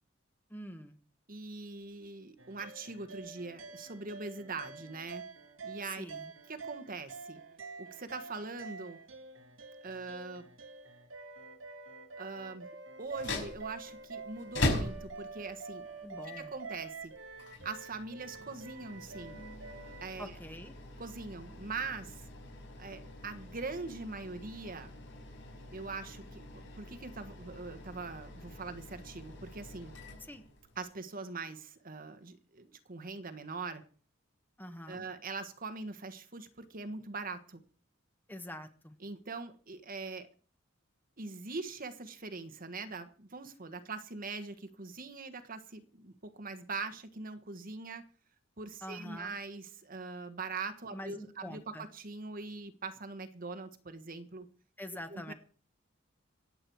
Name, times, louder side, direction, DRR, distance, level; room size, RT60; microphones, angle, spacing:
voice 1, 0.5-1.0 6.0-6.3 16.0-16.5 20.2-20.7 30.2-30.4 34.6-35.1 38.3-39.0 48.8-49.4 50.9-51.9 54.8-55.3, equal, 10° left, 7 dB, 1.4 m, -45 dB
voice 2, 1.3-5.2 5.6-6.0 6.5-7.4 7.8-9.0 9.8-10.4 12.1-12.7 13.0-15.9 16.4-17.1 17.6-19.4 20.0-20.3 21.0-22.3 22.8-24.9 25.7-26.4 26.7-29.9 30.8-33.8 34.9-37.6 39.0-40.3 41.2-48.0 48.6-54.5 55.1-55.3, right 4 dB, 45° right, 10 dB, 1.4 m, -42 dB
sound 1, 2.4-20.1, right 4 dB, 75° right, 1.9 m, -47 dB
sound 2, 13.0-30.8, left 2 dB, 65° left, 5.9 m, -42 dB
25.0 x 8.8 x 4.7 m, 0.41 s
head